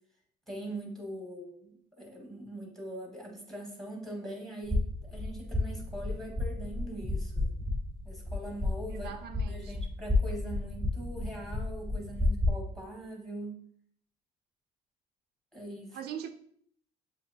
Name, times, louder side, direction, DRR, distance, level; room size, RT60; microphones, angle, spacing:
voice 1, 0.5-7.5 8.0-9.1 9.5-13.6 15.5-16.0, right 1 dB, ahead, 1.4 m, -42 dB
sound 1, 4.6-12.5, left 2 dB, 25° left, 1.4 m, -32 dB
voice 2, 8.9-9.9 15.9-16.3, right 9 dB, 75° right, 0.4 m, -42 dB
7.1 x 2.8 x 2.7 m
cardioid pair, 110°, 17 cm